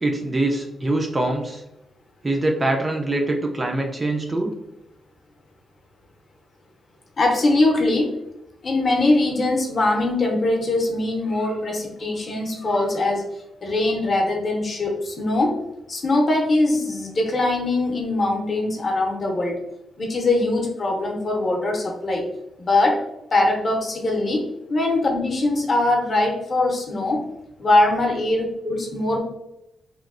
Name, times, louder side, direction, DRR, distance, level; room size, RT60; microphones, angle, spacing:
voice 1, 0.0-1.6 2.2-4.5, right 2 dB, 20° right, 1 dB, 0.3 m, -23 dB
voice 2, 7.2-8.1 8.6-13.2 13.6-15.6 15.9-19.6 20.0-22.2 22.6-23.0 23.3-24.4 24.7-27.2 27.6-29.2, left 2 dB, 35° left, 1 dB, 0.6 m, -21 dB
3.0 x 2.6 x 2.4 m, 0.88 s
wide cardioid pair, 165°, 0 cm